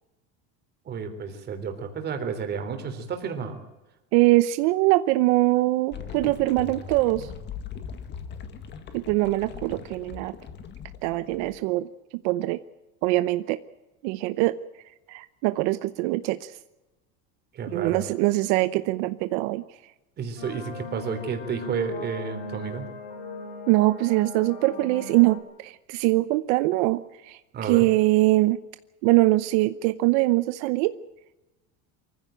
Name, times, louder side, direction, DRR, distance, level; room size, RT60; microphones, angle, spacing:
voice 1, 0.8-3.5 17.5-18.0 20.2-22.8 27.5-27.8, right 6 dB, 30° right, 6 dB, 3.5 m, -31 dB
voice 2, 4.1-7.3 8.9-10.3 11.0-11.9 12.2-12.6 13.0-13.6 14.0-14.6 15.1-16.6 17.7-19.6 23.7-28.6 29.0-30.9, right 19 dB, 80° right, 13 dB, 0.9 m, -23 dB
sound 1, 5.9-11.6, left 7 dB, 30° left, 1.9 m, -40 dB
sound 2, 20.4-25.4, left 3 dB, 55° left, 6.7 m, -39 dB
24.0 x 15.5 x 9.1 m, 1.0 s
cardioid pair, 170°, 34 cm